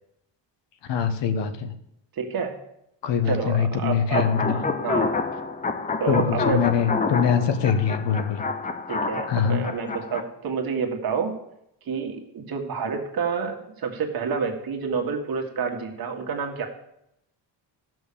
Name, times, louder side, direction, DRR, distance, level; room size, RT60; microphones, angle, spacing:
voice 1, 0.9-1.7 3.0-4.6 6.1-8.4 9.3-9.6, left 7 dB, 65° left, 9 dB, 1.3 m, -23 dB
voice 2, 2.1-2.6 3.3-5.1 6.0-6.7 7.4-7.5 8.9-11.3 11.9-16.7, right 5 dB, 50° right, 3 dB, 1.9 m, -29 dB
sound 1, 4.1-10.2, left 4 dB, 20° left, 0.6 m, -28 dB
14.0 x 6.3 x 7.0 m, 0.79 s
cardioid pair, 165°, 46 cm